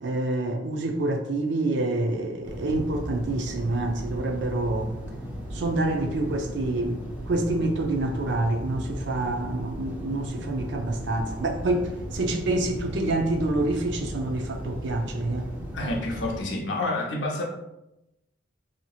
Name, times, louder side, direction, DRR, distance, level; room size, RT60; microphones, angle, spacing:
voice 1, 0.0-4.9 5.5-7.0 7.3-15.5, right 2 dB, 65° right, 3 dB, 0.4 m, -27 dB
sound 1, 2.4-16.4, equal, 10° right, 0.5 m, -36 dB
voice 2, 15.7-17.4, left 2 dB, 65° left, 0 dB, 0.6 m, -28 dB
2.9 x 2.8 x 2.3 m, 0.91 s
head